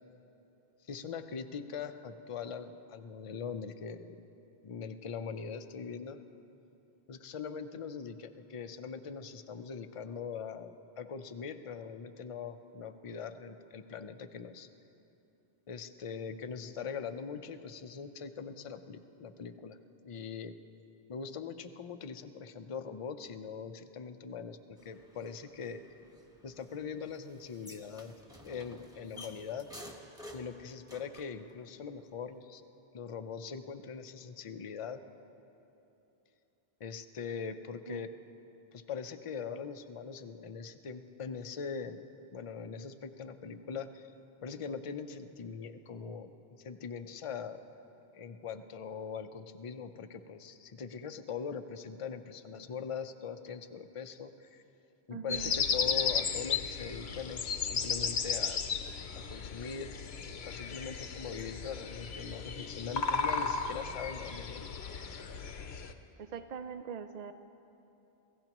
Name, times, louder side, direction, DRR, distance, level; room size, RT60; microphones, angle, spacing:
voice 1, 0.8-4.2 4.6-6.2 7.1-14.7 15.7-19.8 20.0-20.5 21.1-25.8 26.4-28.1 28.4-29.7 30.3-32.6 32.9-35.0 36.8-38.1 38.7-42.0 42.3-44.1 44.4-47.6 48.1-54.6 55.1-58.6 59.1-59.9 60.4-64.7, left 6 dB, 40° left, 8 dB, 0.5 m, -41 dB
sound 1, 24.8-31.4, left 1 dB, 5° right, 1.2 m, -52 dB
voice 2, 55.1-55.6 66.2-67.3, right 7 dB, 55° right, 9 dB, 0.4 m, -42 dB
sound 2, 55.3-65.9, left 6 dB, 75° left, 1.0 m, -35 dB
27.5 x 15.5 x 3.0 m, 2.9 s
omnidirectional pair, 1.1 m